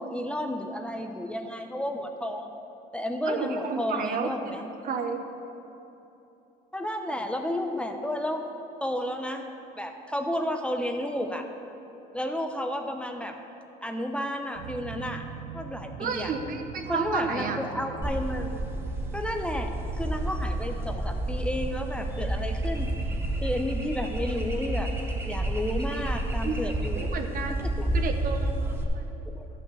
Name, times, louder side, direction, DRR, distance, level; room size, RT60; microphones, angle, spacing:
voice 1, 0.0-2.5 2.9-4.6 6.7-8.5 8.8-11.5 12.1-13.4 13.8-15.2 15.5-16.3 16.9-18.6 19.1-22.9 23.4-24.9 25.2-27.1 27.6-27.9 29.3-29.5, left 1 dB, 5° left, 4 dB, 0.7 m, -32 dB
voice 2, 3.3-4.3 4.8-5.2 16.0-17.6 26.4-26.6 27.0-29.0, right 5 dB, 55° right, 5 dB, 1.0 m, -32 dB
sound 1, 14.5-26.0, right 7 dB, 85° right, 0.6 m, -44 dB
sound 2, 18.0-28.8, right 1 dB, 15° right, 1.4 m, -30 dB
12.0 x 6.0 x 7.1 m, 2.9 s
cardioid pair, 110°, 17 cm